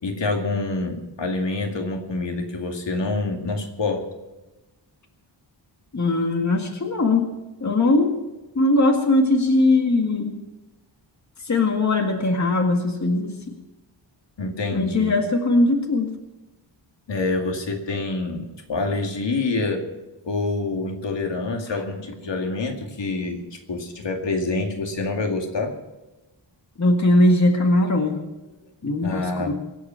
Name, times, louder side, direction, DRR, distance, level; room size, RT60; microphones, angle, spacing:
voice 1, 0.0-4.1 14.4-15.1 17.1-19.8 20.2-25.7 29.0-29.5, left 3 dB, 65° left, 3 dB, 2.3 m, -26 dB
voice 2, 5.9-7.3 7.6-8.2 8.6-10.4 11.4-13.6 14.7-16.1 26.8-28.2 28.8-29.5, left 2 dB, 35° left, 3 dB, 2.0 m, -20 dB
25.0 x 8.5 x 5.8 m, 1.1 s
wide cardioid pair, 170°, 46 cm